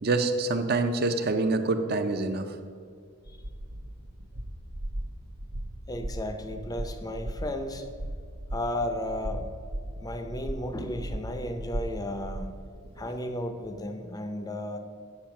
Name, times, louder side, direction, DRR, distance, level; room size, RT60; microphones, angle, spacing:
voice 1, 0.0-2.5, right 3 dB, 45° right, 7 dB, 0.6 m, -26 dB
sound 1, 3.2-12.7, right 1 dB, 75° right, 0.9 m, -37 dB
voice 2, 5.9-7.9 8.5-9.5 10.0-12.5 13.0-14.8, left 1 dB, 15° left, 7 dB, 0.6 m, -34 dB
8.7 x 5.6 x 6.0 m, 2.2 s
head